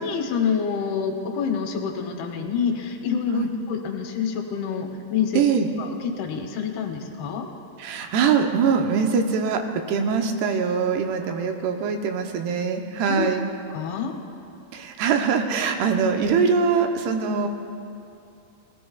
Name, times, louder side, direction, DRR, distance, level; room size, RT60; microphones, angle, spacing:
voice 1, 0.0-5.4 5.8-7.5 13.1-13.3 13.7-14.1, left 6 dB, 75° left, 4 dB, 2.8 m, -27 dB
voice 2, 5.3-5.7 7.8-9.6 9.9-13.4 14.7-17.5, right 6 dB, 85° right, 4 dB, 2.9 m, -22 dB
20.5 x 16.5 x 2.3 m, 2.6 s
omnidirectional pair, 4.7 m